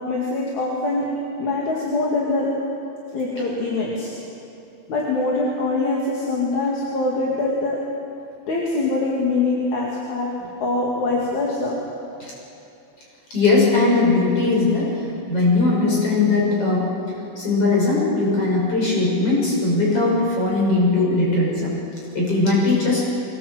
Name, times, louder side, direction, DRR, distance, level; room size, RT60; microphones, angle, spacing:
voice 1, 0.1-1.0 1.4-2.5 3.1-4.1 4.9-7.8 8.5-10.3 10.6-11.8, left 3 dB, 45° left, -3 dB, 3.2 m, -23 dB
voice 2, 13.3-14.9 15.3-16.9 17.4-21.7 22.1-23.0, left 3 dB, 30° left, -4 dB, 7.0 m, -19 dB
23.0 x 18.5 x 8.0 m, 2.8 s
omnidirectional pair, 5.3 m